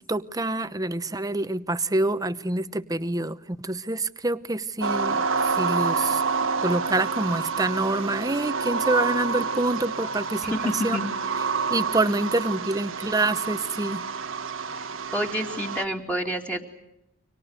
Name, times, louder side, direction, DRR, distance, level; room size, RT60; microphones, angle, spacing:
voice 1, 0.1-6.2 6.6-11.0 11.7-14.0, right 2 dB, 15° right, 13 dB, 0.9 m, -26 dB
sound 1, 4.8-15.8, right 5 dB, 70° right, 1.4 m, -28 dB
voice 2, 10.5-11.0 15.1-16.6, equal, 5° left, 2 dB, 2.6 m, -28 dB
30.0 x 25.5 x 6.6 m, 0.85 s
head